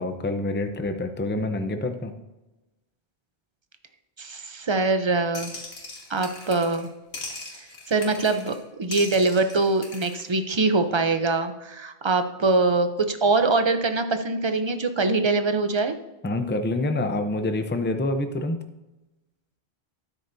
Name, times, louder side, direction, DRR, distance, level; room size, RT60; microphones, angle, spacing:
voice 1, 0.0-2.1 16.2-18.6, left 2 dB, 15° left, 7 dB, 0.5 m, -27 dB
voice 2, 4.2-5.5 6.1-6.9 7.9-16.0, right 3 dB, 30° right, 8 dB, 0.6 m, -23 dB
sound 1, 5.3-6.9 7.1-8.6 8.9-10.2, left 3 dB, 70° left, 2.0 m, -39 dB
12.5 x 9.9 x 2.7 m, 1.0 s
omnidirectional pair, 1.1 m